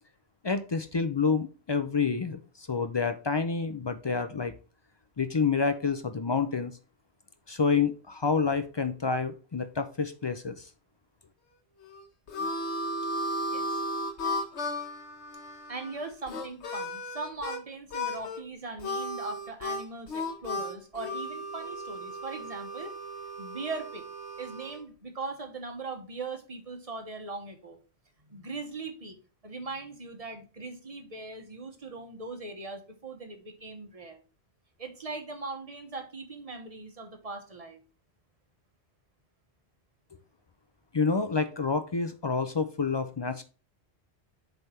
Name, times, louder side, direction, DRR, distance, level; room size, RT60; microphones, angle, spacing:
voice 1, 0.4-4.5 5.2-6.7 7.5-10.7 40.9-43.4, left 5 dB, 40° left, 9 dB, 0.3 m, -28 dB
Harmonica, 11.8-17.6 17.9-18.4 18.8-24.8, left 1 dB, 90° left, 1.3 m, -35 dB
voice 2, 15.7-22.9 23.4-24.0 24.4-27.8 28.3-29.2 29.4-34.2 34.8-37.8, right 3 dB, 35° right, 5 dB, 1.1 m, -40 dB
7.8 x 3.5 x 4.3 m, 0.35 s
omnidirectional pair, 1.1 m